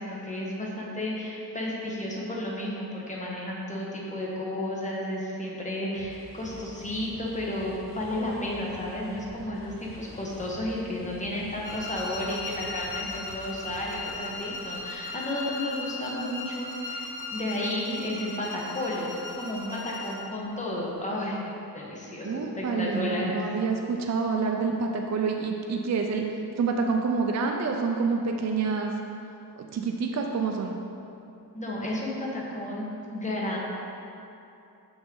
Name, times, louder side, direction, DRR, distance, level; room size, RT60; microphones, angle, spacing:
voice 1, 0.0-21.5 21.7-23.4 31.5-32.8 33.1-33.6, left 1 dB, 20° left, -4 dB, 1.2 m, -32 dB
sound 1, 5.9-15.1, equal, 35° left, 1.4 m, -48 dB
sound 2, 11.6-20.4, left 3 dB, 55° left, 0.7 m, -37 dB
voice 2, 22.2-26.2 26.6-29.0 29.6-30.8, right 4 dB, 45° right, 2 dB, 0.4 m, -27 dB
6.2 x 6.0 x 3.8 m, 2.8 s
wide cardioid pair, 125°, 39 cm